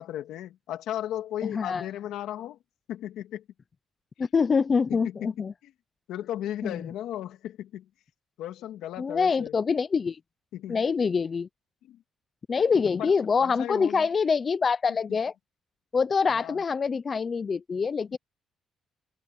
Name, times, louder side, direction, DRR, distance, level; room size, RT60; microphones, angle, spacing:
voice 1, 0.0-2.6 2.9-3.4 4.9-5.7 6.1-7.9 8.4-9.5 10.5-10.8 11.8-12.0 13.0-13.1 13.4-14.1 16.3-16.6, left 12 dB, 90° left, 2.6 m, -36 dB
voice 2, 1.4-1.9 4.2-5.5 6.6-6.9 9.0-10.2 10.7-11.5 12.5-15.3 15.9-18.2, left 5 dB, 30° left, 0.5 m, -25 dB
open air
cardioid pair, 150°, 0 cm